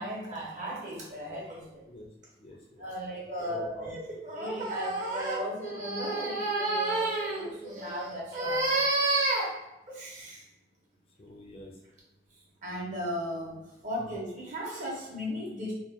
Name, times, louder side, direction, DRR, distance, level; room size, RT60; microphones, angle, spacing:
voice 1, 0.0-1.8 2.8-10.4 12.6-15.7, right 1 dB, 45° right, -4 dB, 0.7 m, -32 dB
voice 2, 1.8-3.9 11.2-11.8 14.0-14.1, left 1 dB, 35° left, -1 dB, 0.3 m, -48 dB
2.3 x 2.2 x 2.6 m, 0.92 s
head